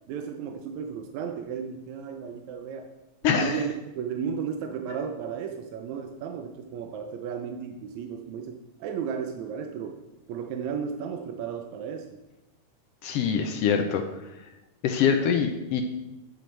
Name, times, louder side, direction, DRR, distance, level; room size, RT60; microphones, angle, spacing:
voice 1, 0.1-2.9 3.2-9.9 10.3-12.2, right 6 dB, 80° right, 4 dB, 2.0 m, -34 dB
voice 2, 3.2-3.6 13.0-14.0 14.8-15.8, left 7 dB, 75° left, 5 dB, 1.4 m, -24 dB
9.2 x 9.0 x 3.3 m, 1.0 s
omnidirectional pair, 3.4 m